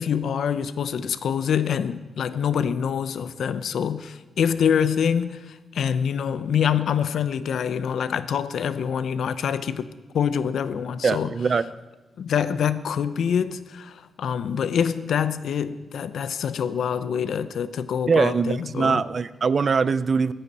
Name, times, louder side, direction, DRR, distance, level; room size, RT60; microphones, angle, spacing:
voice 1, 0.0-9.9 10.1-11.3 12.2-19.0, left 8 dB, 75° left, 0.6 m, -25 dB
voice 2, 11.0-11.6 18.1-20.3, right 5 dB, 40° right, 0.4 m, -22 dB
23.5 x 9.7 x 4.2 m
wide cardioid pair, 130°, 0 cm